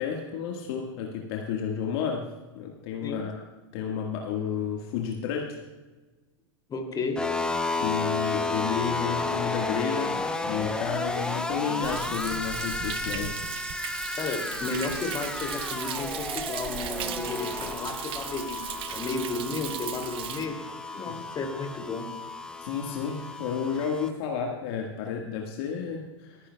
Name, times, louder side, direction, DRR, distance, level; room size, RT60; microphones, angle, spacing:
voice 1, 0.0-2.2 2.5-3.4 3.7-5.5 7.8-10.1 10.4-13.3 22.6-26.5, left 7 dB, 60° left, 0 dB, 1.7 m, -31 dB
voice 2, 6.7-7.3 14.2-18.6 18.9-20.6 20.9-22.1, left 3 dB, 25° left, 3 dB, 2.7 m, -33 dB
sound 1, 7.2-24.1, left 3 dB, 5° left, 1.0 m, -33 dB
Thunder, 11.8-20.5, right 11 dB, 35° right, 0.8 m, -37 dB
27.0 x 10.0 x 2.3 m, 1.2 s
hypercardioid pair, 95°, 15 cm